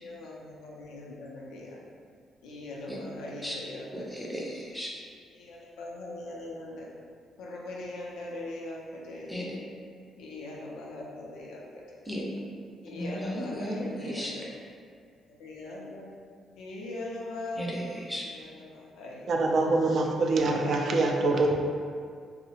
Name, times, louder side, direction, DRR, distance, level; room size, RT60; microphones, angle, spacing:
voice 1, 0.0-1.8 2.4-4.3 5.3-6.9 7.4-9.6 10.2-12.0 12.8-14.5 15.3-16.1 16.6-17.6 18.2-19.6, left 2 dB, 90° left, -3 dB, 0.4 m, -41 dB
voice 2, 3.9-4.9 9.3-9.5 12.1-12.2 12.9-14.5 17.6-18.3, equal, ahead, -3 dB, 0.5 m, -35 dB
voice 3, 19.3-21.6, right 2 dB, 55° right, 1 dB, 0.3 m, -24 dB
2.7 x 2.0 x 2.8 m, 2.2 s
cardioid pair, 90°, 0 cm